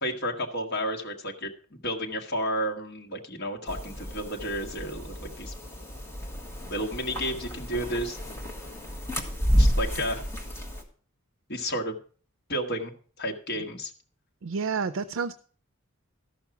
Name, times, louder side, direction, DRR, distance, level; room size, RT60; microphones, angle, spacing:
voice 1, 0.0-5.5 6.7-8.2 9.6-10.2 11.5-12.0 12.5-12.9 13.2-13.9, equal, 55° left, 1 dB, 1.4 m, -31 dB
sound 1, 3.7-10.8, equal, 15° left, 1.6 m, -30 dB
voice 2, 14.4-15.3, right 5 dB, 65° right, 11 dB, 0.5 m, -29 dB
13.5 x 5.9 x 5.8 m, 0.43 s
head